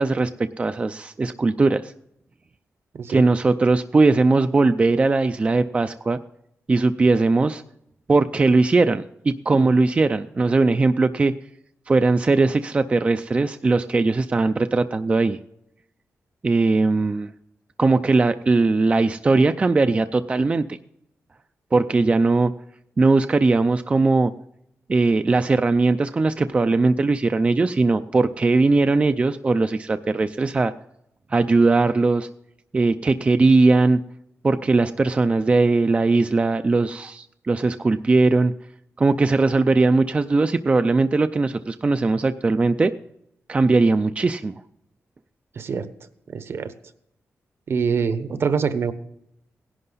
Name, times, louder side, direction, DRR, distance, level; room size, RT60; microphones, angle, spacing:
voice 1, 0.0-1.9 3.1-6.2 6.7-7.6 8.1-11.3 11.9-15.4 16.4-17.3 17.8-20.6 21.7-22.5 23.0-24.3 24.9-30.7 31.3-32.3 32.7-34.0 34.4-38.5 39.0-42.9 43.5-44.6, right 3 dB, 25° right, 10 dB, 0.4 m, -19 dB
voice 2, 45.6-45.9 46.3-46.7 47.7-48.9, right 6 dB, 55° right, 11 dB, 1.0 m, -24 dB
17.5 x 11.0 x 4.0 m, 0.78 s
wide cardioid pair, 145°, 5 cm